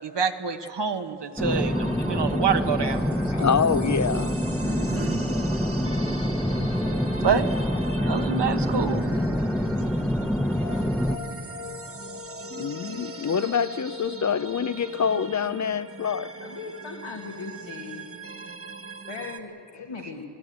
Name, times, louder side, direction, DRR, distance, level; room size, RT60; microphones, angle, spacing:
voice 1, 0.0-3.1 3.4-3.5 4.6-5.2 7.2-7.5 8.0-9.1, right 6 dB, 60° right, 1.4 m, -27 dB
sound 1, 1.4-11.2, equal, 5° left, 1.0 m, -26 dB
sound 2, 1.5-19.4, right 2 dB, 30° right, 1.2 m, -39 dB
voice 2, 3.3-4.4 4.7-5.1 6.5-6.7 12.6-16.3, left 7 dB, 40° left, 0.6 m, -26 dB
voice 3, 16.4-18.0 19.1-20.2, left 5 dB, 75° left, 1.9 m, -39 dB
26.5 x 16.5 x 8.1 m
cardioid pair, 60°, 47 cm